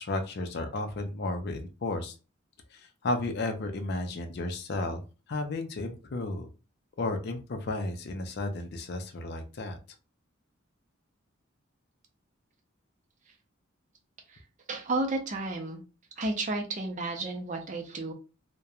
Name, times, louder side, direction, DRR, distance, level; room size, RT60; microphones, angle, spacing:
voice 1, 0.0-2.1 2.7-5.0 5.3-6.5 7.0-9.8, left 2 dB, 55° left, 6 dB, 0.4 m, -33 dB
voice 2, 14.7-15.8 16.2-18.1, right 2 dB, 40° right, 3 dB, 0.5 m, -32 dB
2.9 x 2.1 x 2.4 m, 0.32 s
head